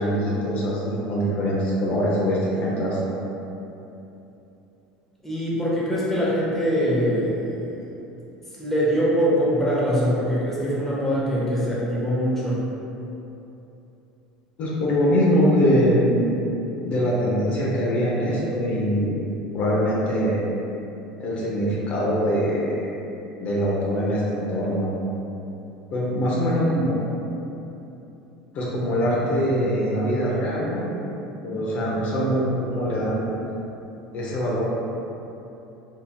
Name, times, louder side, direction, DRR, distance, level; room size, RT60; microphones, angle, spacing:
voice 1, 0.0-3.0 14.6-16.3 16.8-19.2 19.5-20.4 21.2-22.8 23.4-24.9 25.9-27.0 28.5-30.9 31.4-33.2 34.1-34.6, equal, 50° left, -5 dB, 0.6 m, -23 dB
voice 2, 5.2-7.9 8.6-12.6, equal, 10° left, -7 dB, 0.9 m, -23 dB
3.8 x 2.8 x 2.2 m, 2.9 s
supercardioid pair, 100°, 3 cm